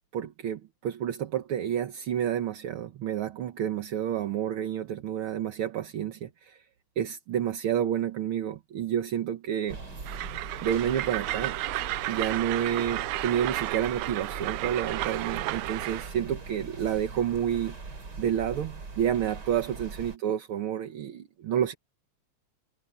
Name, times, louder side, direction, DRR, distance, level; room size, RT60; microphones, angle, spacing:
voice 1, 0.1-6.6 7.0-9.8 10.6-11.6 12.1-21.7, right 10 dB, 55° right, 1.7 m, -30 dB
sound 1, 9.7-20.2, right 3 dB, 35° right, 3.3 m, -41 dB
Train, 10.1-16.1, right 17 dB, 85° right, 2.0 m, -33 dB
omnidirectional pair, 3.4 m